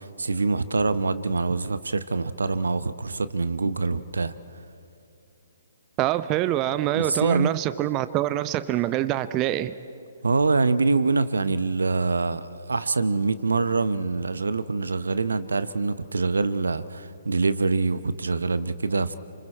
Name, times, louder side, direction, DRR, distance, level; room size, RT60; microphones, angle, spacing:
voice 1, 0.0-4.3 6.9-7.5 10.2-19.1, right 3 dB, 70° right, 15 dB, 0.9 m, -25 dB
voice 2, 6.0-9.8, right 14 dB, 25° right, 13 dB, 0.6 m, -25 dB
29.0 x 26.5 x 4.4 m, 2.5 s
figure-of-eight pair, 125°, 0 cm